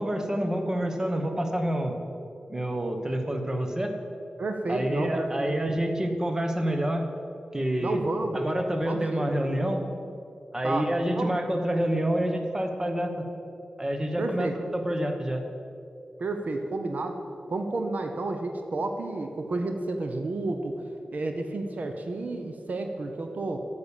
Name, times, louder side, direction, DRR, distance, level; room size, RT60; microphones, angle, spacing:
voice 1, 0.0-2.0 2.5-4.0 4.7-7.1 7.5-8.0 8.3-9.9 10.5-13.3 13.8-15.4, right 1 dB, 20° right, 5 dB, 1.0 m, -28 dB
voice 2, 4.4-5.5 7.8-8.4 8.8-9.3 10.6-10.9 11.1-11.4 14.2-14.5 16.2-17.2 17.5-23.6, right 2 dB, 65° right, 5 dB, 0.8 m, -31 dB
9.0 x 6.9 x 7.1 m, 2.7 s
wide cardioid pair, 95°, 3 cm